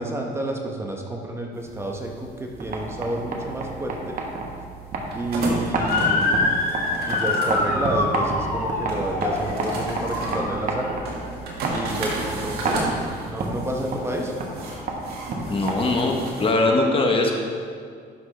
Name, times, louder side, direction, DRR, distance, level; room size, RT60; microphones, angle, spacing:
voice 1, 0.0-4.2 5.1-6.8 7.1-10.9 11.7-14.3, right 1 dB, 15° right, 1 dB, 0.9 m, -30 dB
sound 1, 1.5-16.5, right 2 dB, 70° right, 1.8 m, -34 dB
sound 2, 2.4-16.2, right 3 dB, 50° right, 1.3 m, -31 dB
Motor vehicle (road) / Siren, 5.8-11.0, left 3 dB, 60° left, 2.1 m, -25 dB
voice 2, 15.5-17.3, left 2 dB, 35° left, 2 dB, 1.0 m, -21 dB
11.5 x 6.0 x 3.3 m, 2.1 s
cardioid pair, 110°, 17 cm